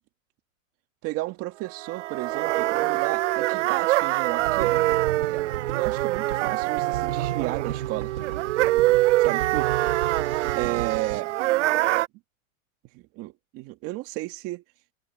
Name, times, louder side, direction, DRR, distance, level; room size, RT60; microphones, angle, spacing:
voice 1, 1.0-4.8 5.3-8.1 9.2-9.9 10.5-11.3 12.9-14.6, right 19 dB, 35° right, 2.2 m, -33 dB
sound 1, 1.8-12.1, right 17 dB, 60° right, 0.8 m, -24 dB
sound 2, 4.4-11.2, right 11 dB, 80° right, 4.7 m, -34 dB
supercardioid pair, 150°, 41 cm